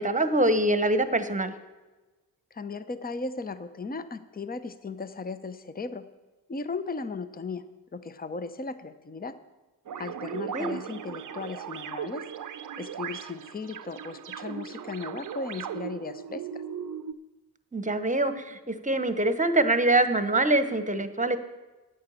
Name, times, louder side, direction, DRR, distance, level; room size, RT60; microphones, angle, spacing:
voice 1, 0.0-1.5 10.5-10.7 17.7-21.4, right 2 dB, 15° right, 11 dB, 1.2 m, -24 dB
voice 2, 2.5-6.1 6.5-7.6 7.9-9.4 10.0-12.2 12.8-16.6, left 4 dB, 20° left, 12 dB, 0.8 m, -36 dB
sound 1, 9.9-17.1, right 8 dB, 45° right, 0.7 m, -38 dB
9.8 x 8.7 x 7.1 m, 1.2 s
supercardioid pair, 40°, 43 cm